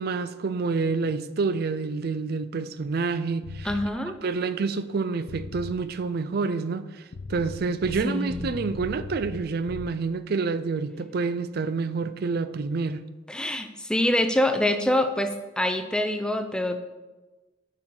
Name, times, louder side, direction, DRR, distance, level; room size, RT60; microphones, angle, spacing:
voice 1, 0.0-3.7 4.2-7.0 7.3-13.0, right 4 dB, 55° right, 0.4 m, -28 dB
sound 1, 3.4-3.9 5.3-5.8 7.1-9.9, left 3 dB, 90° left, 0.5 m, -38 dB
voice 2, 3.6-4.2 8.0-8.5 13.3-16.8, left 1 dB, 5° left, 0.5 m, -25 dB
8.4 x 6.1 x 3.8 m
head